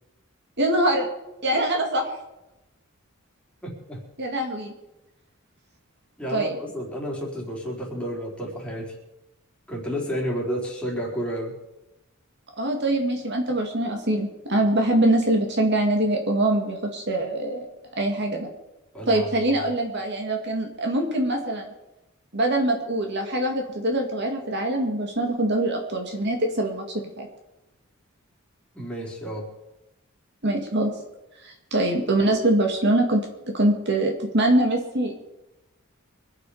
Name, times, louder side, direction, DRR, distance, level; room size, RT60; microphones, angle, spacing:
voice 1, 0.6-1.1 1.4-2.0 4.2-4.7 6.3-6.6 12.6-17.7 18.0-18.5 19.1-21.7 22.3-27.3 30.4-30.9 31.4-33.2 33.5-35.2, right 1 dB, 55° right, 2 dB, 2.3 m, -23 dB
voice 2, 3.6-4.0 6.2-8.9 9.7-11.5 18.9-19.5 28.7-29.5, equal, 5° left, -3 dB, 4.2 m, -31 dB
25.5 x 9.1 x 5.0 m, 0.96 s
head